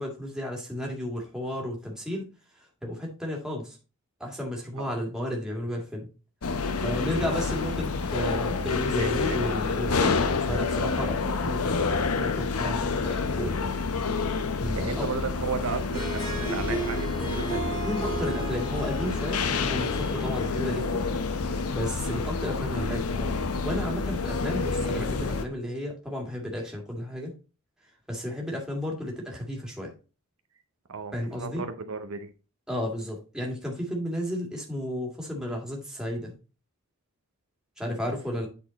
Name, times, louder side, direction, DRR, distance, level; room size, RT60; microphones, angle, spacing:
voice 1, 0.0-2.3 2.8-3.8 4.2-6.1 6.8-13.8 14.6-15.1 17.8-21.0 21.7-23.4 23.6-27.3 28.1-29.9 31.1-31.6 32.7-36.3 37.8-38.5, left 1 dB, 5° right, 2.0 m, -33 dB
sound 1, 6.4-25.5, left 4 dB, 85° left, 0.7 m, -28 dB
voice 2, 8.7-9.4 9.8-10.0 14.7-17.7 20.4-20.5 22.1-22.2 30.9-32.3 38.0-38.2, right 5 dB, 65° right, 0.7 m, -35 dB
Harp, 15.8-21.2, right 1 dB, 20° left, 2.3 m, -35 dB
8.4 x 4.2 x 4.0 m
head